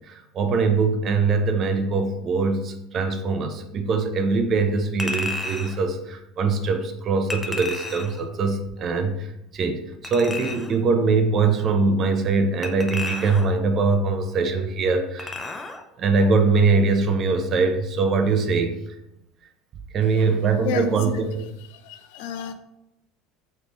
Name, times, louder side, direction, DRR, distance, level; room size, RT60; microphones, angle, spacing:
voice 1, 0.1-15.3 16.0-18.8 19.9-21.5, right 4 dB, 40° right, 7 dB, 0.6 m, -22 dB
Chink clink, 5.0-5.8 7.3-8.2 10.0-10.8 12.6-13.6 15.2-15.8 16.2-16.3, left 2 dB, 15° left, 0.5 m, -32 dB
voice 2, 21.8-22.5, left 7 dB, 75° left, 8 dB, 0.5 m, -30 dB
3.5 x 3.1 x 3.9 m, 0.87 s
supercardioid pair, 115°, 0 cm